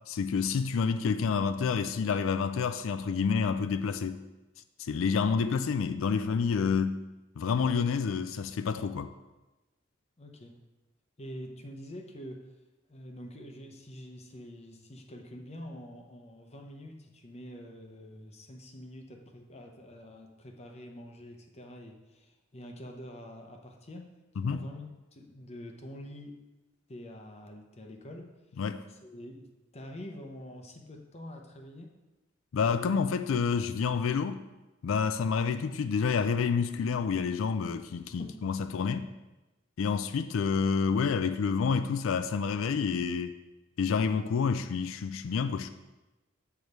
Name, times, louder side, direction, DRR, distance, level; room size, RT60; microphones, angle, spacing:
voice 1, 0.1-4.2 4.8-7.0 7.4-9.1 24.4-24.6 28.6-28.8 32.5-34.4 34.8-39.1 39.8-43.4 43.8-45.7, left 5 dB, 75° left, 0.4 m, -28 dB
voice 2, 10.2-10.6 11.2-12.6 12.9-26.4 26.9-28.3 28.9-32.0 38.2-38.5, equal, 35° left, 0.7 m, -46 dB
6.8 x 4.7 x 5.4 m
head